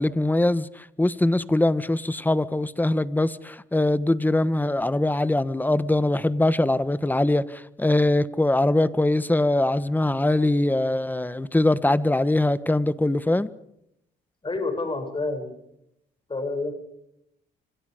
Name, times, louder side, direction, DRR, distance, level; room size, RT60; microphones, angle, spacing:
voice 1, 0.0-13.5, left 1 dB, 10° left, 1.4 m, -22 dB
voice 2, 14.4-15.7 16.3-16.7, left 3 dB, 25° left, 7.5 m, -29 dB
27.0 x 25.5 x 5.2 m
cardioid pair, 90°, 20 cm